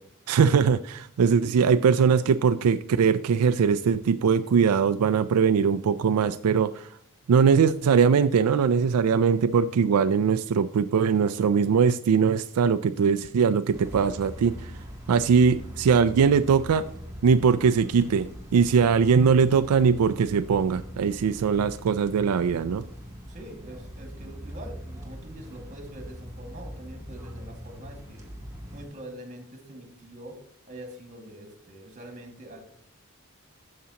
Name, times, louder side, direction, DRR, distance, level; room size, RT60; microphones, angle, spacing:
voice 1, 0.3-6.9 7.3-14.7 15.1-16.8 17.2-22.8, right 6 dB, 80° right, 11 dB, 0.4 m, -21 dB
sound 1, 13.7-28.9, equal, 15° right, 2.1 m, -42 dB
voice 2, 23.3-28.2 28.7-30.4 30.7-32.6, right 1 dB, 35° right, 3 dB, 2.0 m, -44 dB
12.5 x 7.5 x 2.9 m, 0.62 s
head